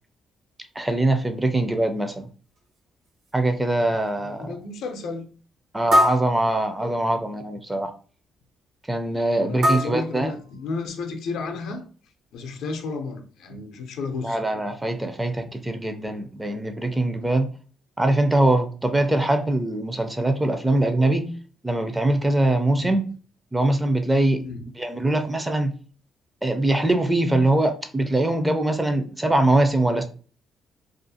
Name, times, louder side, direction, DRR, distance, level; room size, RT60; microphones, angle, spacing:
voice 1, 0.8-2.3 3.3-4.5 5.7-7.9 8.9-10.3 14.2-17.5 18.0-21.3 21.6-23.0 23.5-24.5 24.8-25.8 26.4-30.0, right 1 dB, 15° right, 0.4 m, -22 dB
sound 1, 2.6-2.7 3.3-3.4 4.0-4.1 5.9-7.1 9.6-10.9, equal, 65° right, 0.7 m, -24 dB
voice 2, 4.3-5.3 9.4-11.8 12.3-14.4 15.4-15.5 22.8-22.9 24.4-24.6, left 4 dB, 80° left, 0.4 m, -32 dB
2.4 x 2.3 x 2.6 m
cardioid pair, 90°, 0 cm